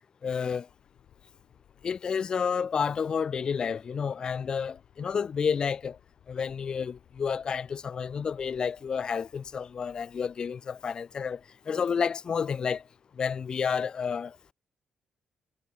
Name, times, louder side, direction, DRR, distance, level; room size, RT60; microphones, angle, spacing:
voice 1, 0.2-0.7 1.8-6.0 6.3-11.4 11.7-12.8 13.2-14.4, left 6 dB, 35° left, 0.4 m, -30 dB
sound 1, 0.7-13.9, left 11 dB, 75° left, 7.3 m, -63 dB
cardioid pair, 155°, 2 cm